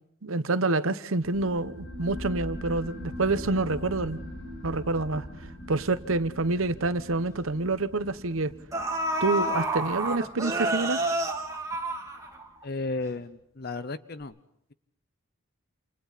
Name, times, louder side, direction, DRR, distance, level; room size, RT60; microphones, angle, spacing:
voice 1, 0.2-4.2 4.6-5.3 5.7-8.5 9.2-11.0, right 3 dB, 80° right, 1.0 m, -27 dB
sound 1, 1.2-12.3, left 1 dB, 80° left, 8.0 m, -42 dB
sound 2, 8.2-8.3 8.7-12.6 13.0-13.1, right 1 dB, 15° right, 2.4 m, -29 dB
voice 2, 12.6-14.3, left 3 dB, 50° left, 0.8 m, -34 dB
28.5 x 28.5 x 4.1 m
head